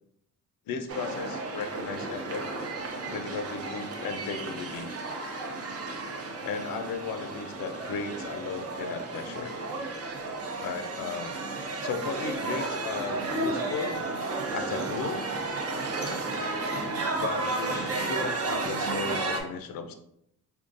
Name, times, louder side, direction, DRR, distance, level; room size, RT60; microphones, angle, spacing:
voice 1, 0.7-2.4 3.1-4.9 6.4-9.5 10.6-11.4 11.8-14.0 14.5-15.3 17.1-19.9, left 5 dB, 75° left, 7 dB, 0.5 m, -35 dB
sound 1, 0.9-19.4, right 3 dB, 45° right, 0.6 m, -33 dB
3.6 x 2.3 x 2.5 m, 0.76 s
cardioid pair, 100°, 34 cm